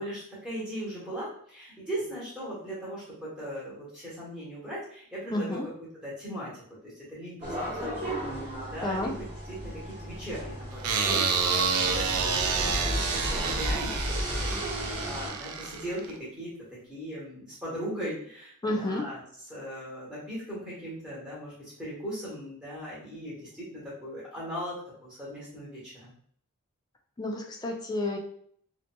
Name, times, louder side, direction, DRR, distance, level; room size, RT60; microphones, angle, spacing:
voice 1, 0.0-5.7 6.0-16.5 16.9-19.2 19.5-24.8 25.0-26.1, equal, 5° right, -9 dB, 1.0 m, -38 dB
voice 2, 5.3-5.7 8.8-9.1 18.6-19.0 27.2-28.2, left 1 dB, 20° left, 2 dB, 0.4 m, -30 dB
sound 1, 7.4-15.3, equal, 30° right, 1.2 m, -34 dB
sound 2, 10.8-16.1, right 5 dB, 80° right, 0.4 m, -29 dB
2.8 x 2.5 x 2.2 m, 0.63 s
head